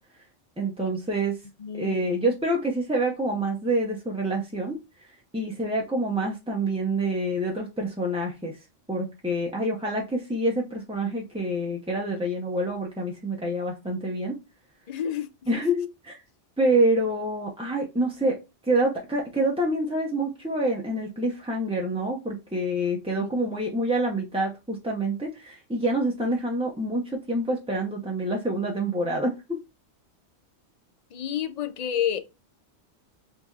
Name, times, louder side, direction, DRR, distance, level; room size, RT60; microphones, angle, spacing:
voice 1, 0.6-1.4 1.7-8.6 8.9-14.4 15.5-16.2 16.6-18.4 18.7-29.6, right 1 dB, 5° right, 0.5 m, -27 dB
voice 2, 1.6-2.2 14.9-15.6 23.1-23.3 31.1-32.2, left 9 dB, 55° left, 0.4 m, -30 dB
6.0 x 2.7 x 2.4 m
omnidirectional pair, 1.2 m